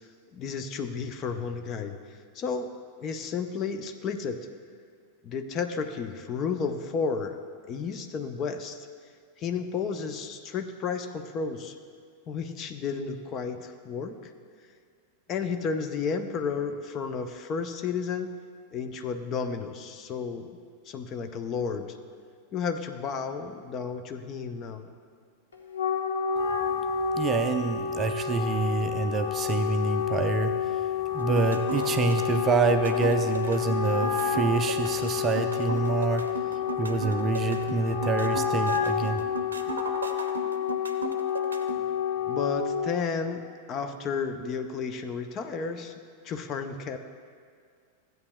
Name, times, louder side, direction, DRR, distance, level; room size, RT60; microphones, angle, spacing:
voice 1, 0.3-2.0 2.3-2.7 3.0-4.5 5.2-7.3 7.7-8.8 9.4-11.8 12.3-14.3 15.3-18.3 18.7-20.6 20.9-22.0 22.5-24.9 42.3-43.4 43.7-45.9 46.2-47.0, left 5 dB, 35° left, 7 dB, 0.6 m, -32 dB
Wind instrument woodwind instrument, 25.5-43.0, left 8 dB, 70° left, 1.1 m, -29 dB
voice 2, 27.1-30.8 31.1-36.4 36.8-39.2, right 5 dB, 25° right, 7 dB, 0.5 m, -27 dB
sound 1, 31.2-41.8, right 4 dB, 70° right, 0.6 m, -36 dB
15.5 x 9.0 x 2.2 m, 2.1 s
figure-of-eight pair, 90°, 0 cm